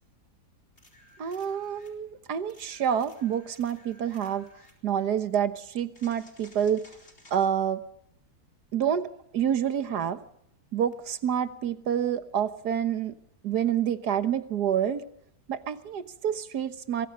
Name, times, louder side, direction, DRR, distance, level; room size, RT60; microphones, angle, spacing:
sound 1, 0.8-2.0 2.5-4.8 5.9-7.5 10.9-11.0, left 1 dB, 40° left, 4.6 m, -56 dB
voice 1, 1.2-4.5 4.8-6.9 7.3-7.8 8.7-9.1 9.3-10.2 10.7-13.1 13.4-15.0 15.5-17.1, right 9 dB, 85° right, 12 dB, 1.8 m, -28 dB
24.5 x 23.0 x 5.6 m, 0.73 s
omnidirectional pair, 1.7 m